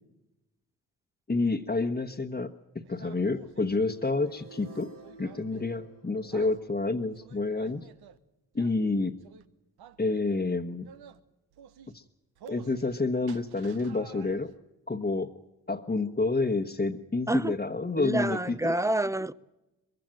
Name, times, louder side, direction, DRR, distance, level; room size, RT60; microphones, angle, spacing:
voice 1, 1.3-2.5 2.7-4.9 5.2-7.9 8.5-9.1 10.0-10.9 11.9-12.0 12.5-14.5 14.9-15.3 15.7-18.8, left 3 dB, 25° left, 1.2 m, -29 dB
sound 1, 2.8-4.4 5.0-5.9 6.3-6.6 7.1-8.2 8.5-8.8 9.2-9.5 9.8-10.4 10.8-11.2 11.5-11.9 12.4-13.0 13.2-14.6, right 8 dB, 80° right, 1.0 m, -52 dB
sound 2, 3.6-7.7, right 2 dB, 55° right, 5.5 m, -53 dB
voice 2, 18.0-19.3, right 1 dB, 10° right, 0.7 m, -28 dB
21.5 x 15.5 x 9.0 m
supercardioid pair, 55°, 38 cm